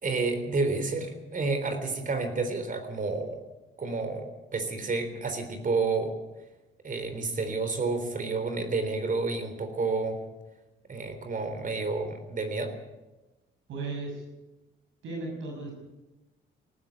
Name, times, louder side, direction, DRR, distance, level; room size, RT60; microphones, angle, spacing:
voice 1, 0.0-3.4 3.8-6.1 6.8-10.2 10.9-12.7, right 3 dB, 45° right, 8 dB, 3.7 m, -30 dB
voice 2, 13.7-14.2 15.0-15.7, right 3 dB, 80° right, 0 dB, 6.2 m, -35 dB
18.5 x 14.5 x 9.9 m, 1.0 s
cardioid pair, 90°, 20 cm